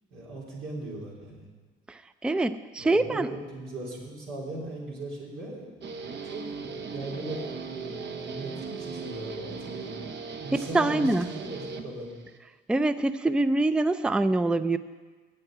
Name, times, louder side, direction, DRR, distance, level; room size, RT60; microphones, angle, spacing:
voice 1, 0.1-1.5 2.8-10.0 10.4-12.2, right 2 dB, 90° right, -3 dB, 3.3 m, -39 dB
voice 2, 1.9-3.3 10.5-11.3 12.7-14.8, right 2 dB, 5° right, 13 dB, 0.4 m, -25 dB
Guitar, 5.8-12.4, right 5 dB, 65° right, 1.0 m, -38 dB
8.7 x 7.7 x 8.7 m, 1.4 s
cardioid pair, 90°, 20 cm